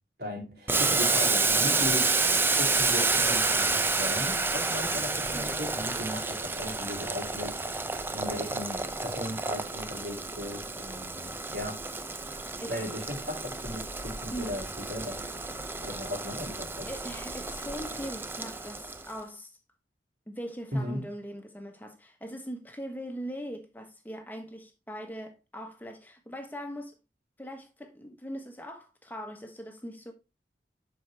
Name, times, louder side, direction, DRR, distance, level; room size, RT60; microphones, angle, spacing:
voice 1, 0.2-2.1 2.6-7.8 8.1-11.8 12.7-15.2 15.8-16.9 20.7-21.0, left 1 dB, 60° right, 3.4 m, -37 dB
Boiling, 0.7-19.1, right 3 dB, 10° right, 0.4 m, -29 dB
voice 2, 16.9-19.5 20.3-26.9 27.4-30.1, equal, 10° left, 1.2 m, -40 dB
11.0 x 4.7 x 3.3 m
head